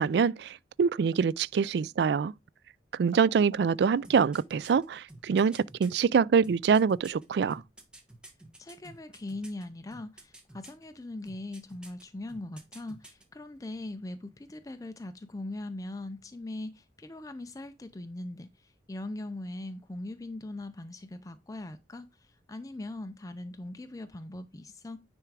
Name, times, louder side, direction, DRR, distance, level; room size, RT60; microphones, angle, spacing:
voice 1, 0.0-2.3 2.9-7.6, right 6 dB, 65° right, 0.3 m, -25 dB
sound 1, 4.0-5.9 6.4-9.6 9.9-10.8 11.3-12.0 12.3-13.2 13.5-13.6, right 1 dB, 5° right, 1.4 m, -50 dB
voice 2, 8.6-25.0, left 2 dB, 20° left, 0.4 m, -40 dB
9.8 x 3.5 x 4.7 m
head